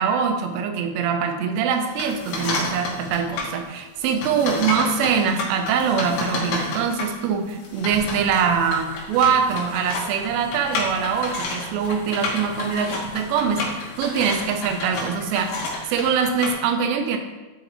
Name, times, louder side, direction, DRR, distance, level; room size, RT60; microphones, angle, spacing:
voice 1, 0.0-17.2, right 6 dB, 85° right, 5 dB, 3.3 m, -23 dB
sound 1, 1.9-3.5 4.0-16.5, left 3 dB, 65° left, 3.2 m, -31 dB
12.0 x 5.1 x 3.1 m, 1.2 s
omnidirectional pair, 5.6 m